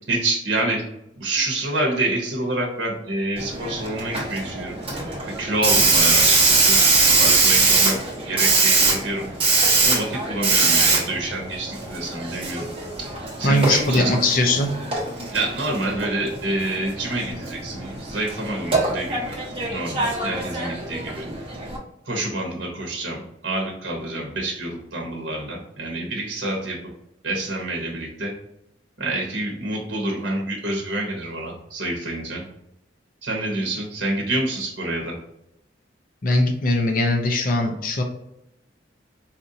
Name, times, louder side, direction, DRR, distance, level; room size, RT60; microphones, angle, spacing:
voice 1, 0.1-0.9 1.1-8.0 8.3-9.3 9.8-12.7 13.0-14.0 15.3-19.4 19.7-21.3 22.0-26.8 27.2-28.3 29.0-32.4 33.2-35.2, right 2 dB, 65° right, 0 dB, 0.9 m, -27 dB
Hiss, 3.4-21.8, right 3 dB, 30° right, 1.0 m, -22 dB
voice 2, 13.4-14.7 36.2-38.0, left 1 dB, 45° left, 3 dB, 0.5 m, -20 dB
4.2 x 2.5 x 2.7 m, 0.84 s
head